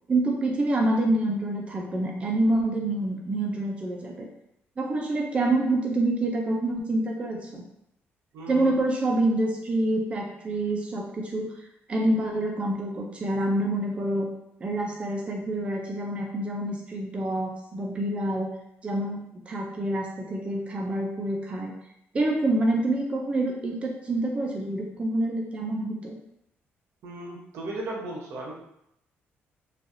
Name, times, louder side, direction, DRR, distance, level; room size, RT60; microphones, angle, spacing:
voice 1, 0.1-4.3 4.8-7.6 8.5-11.5 11.9-14.3 14.6-18.5 18.8-19.2 19.5-21.7 22.1-26.2, right 1 dB, 25° right, 0 dB, 0.4 m, -27 dB
voice 2, 8.3-8.8 27.0-28.5, right 2 dB, 85° right, -3 dB, 0.8 m, -36 dB
3.2 x 2.3 x 2.6 m, 0.79 s
cardioid pair, 130°, 5 cm